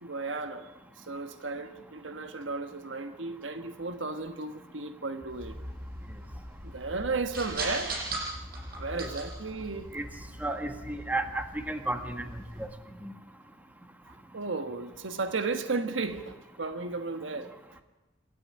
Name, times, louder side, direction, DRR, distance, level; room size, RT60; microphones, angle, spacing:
voice 1, 0.0-5.6 6.6-8.0 8.8-9.9 14.3-17.5, right 3 dB, 90° right, 8 dB, 1.4 m, -34 dB
sound 1, 5.3-12.7, right 2 dB, 55° right, 7.3 m, -40 dB
voice 2, 10.4-12.2 12.6-12.7 13.0-13.1, right 2 dB, 10° right, 6 dB, 1.8 m, -33 dB
27.0 x 13.0 x 9.8 m, 1.1 s
head